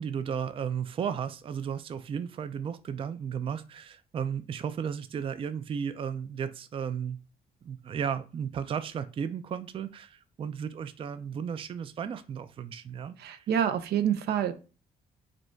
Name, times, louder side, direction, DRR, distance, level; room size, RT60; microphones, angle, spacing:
voice 1, 0.0-7.2 7.6-13.5, right 7 dB, 35° right, 11 dB, 0.3 m, -34 dB
voice 2, 13.2-14.5, right 9 dB, 90° right, 10 dB, 0.6 m, -27 dB
5.0 x 2.3 x 4.4 m, 0.33 s
cardioid pair, 135°, 16 cm